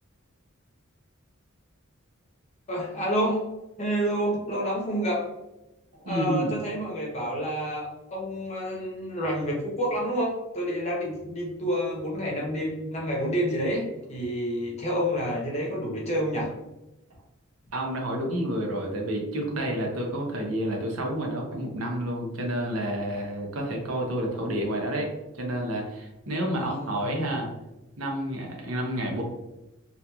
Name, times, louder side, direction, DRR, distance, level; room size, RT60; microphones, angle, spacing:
voice 1, 2.7-3.5 3.8-5.2 6.1-13.8 14.1-16.5 26.5-27.1, equal, 30° left, -3 dB, 0.8 m, -29 dB
voice 2, 6.0-6.5 17.7-27.5 28.0-29.2, right 1 dB, 85° right, 1 dB, 0.7 m, -29 dB
2.8 x 2.4 x 2.3 m, 0.96 s
head